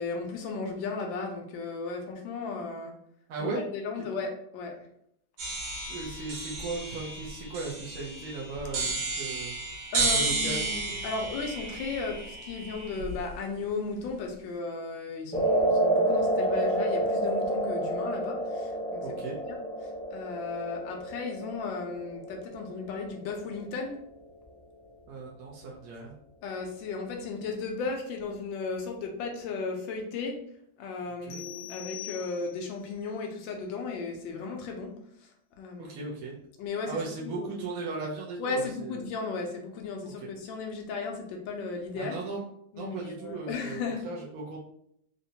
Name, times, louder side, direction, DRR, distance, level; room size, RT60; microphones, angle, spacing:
voice 1, 0.0-2.9 3.4-4.8 9.9-19.0 19.5-19.6 20.1-24.0 26.4-30.4 30.8-34.9 35.6-36.1 36.6-37.7 38.4-42.2 42.7-44.1, left 4 dB, 85° left, 2 dB, 1.3 m, -35 dB
voice 2, 3.3-3.6 5.9-9.5 10.0-10.6 19.0-19.4 25.1-26.1 31.3-31.4 35.7-36.3 36.9-39.0 40.0-40.3 42.0-42.4 42.7-44.6, right 3 dB, 65° right, -4 dB, 0.9 m, -37 dB
sound 1, 5.4-13.3, right 3 dB, 90° right, 1.7 m, -33 dB
sound 2, 15.3-23.7, right 1 dB, 5° left, 0.5 m, -29 dB
sound 3, 31.3-32.8, left 13 dB, 65° left, 1.1 m, -43 dB
3.8 x 2.1 x 2.7 m, 0.72 s
omnidirectional pair, 2.0 m